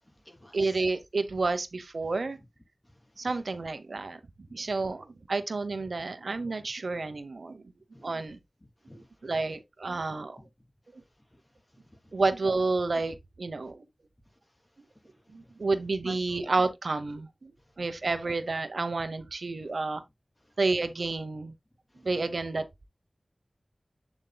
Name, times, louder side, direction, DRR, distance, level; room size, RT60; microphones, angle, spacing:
voice 1, 0.0-0.8 2.4-2.5 2.8-3.4 6.4-6.5 7.9-8.3 8.8-9.4 10.4-10.5 10.9-12.2 13.6-13.7 14.2-14.6 14.9-15.5 16.0-16.5 17.6-17.8 19.6-19.7 20.4-20.6 21.9-22.1, left 1 dB, 25° left, 3.1 m, -54 dB
voice 2, 0.5-2.4 3.2-4.2 4.5-7.7 8.0-8.4 9.2-10.4 12.1-13.8 15.3-17.5 17.8-20.0 20.6-21.5 22.0-22.9, right 3 dB, 85° right, 0.8 m, -30 dB
8.2 x 7.2 x 2.2 m
wide cardioid pair, 40°, 0 cm